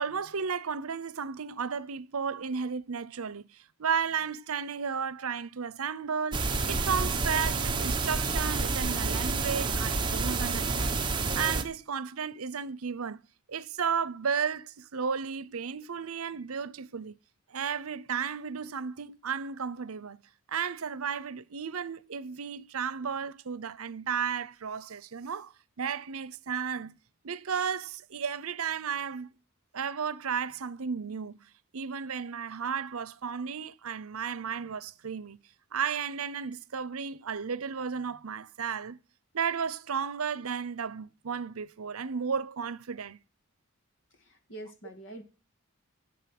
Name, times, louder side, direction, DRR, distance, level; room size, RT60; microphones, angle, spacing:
voice 1, 0.0-11.0 11.3-13.2 13.5-17.2 17.5-20.2 20.5-25.5 25.8-26.9 27.2-29.3 29.7-31.4 31.7-35.4 35.7-39.0 39.3-43.2, right 6 dB, 85° right, 0.7 m, -33 dB
sound 1, 6.3-11.6, right 3 dB, 20° right, 1.2 m, -29 dB
voice 2, 44.2-45.2, right 1 dB, 60° left, 2.5 m, -45 dB
13.0 x 7.4 x 6.0 m
head